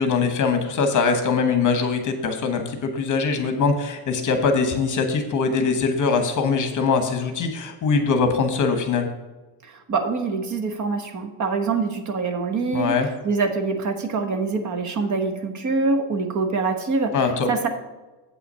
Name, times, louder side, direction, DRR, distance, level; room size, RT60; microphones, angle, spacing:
voice 1, 0.0-9.1 12.7-13.1 17.1-17.5, left 5 dB, 45° left, 6 dB, 1.1 m, -22 dB
voice 2, 9.6-13.0 13.2-17.1 17.5-17.7, right 4 dB, 40° right, 6 dB, 1.1 m, -24 dB
8.2 x 5.7 x 5.5 m, 1.2 s
cardioid pair, 170°, 43 cm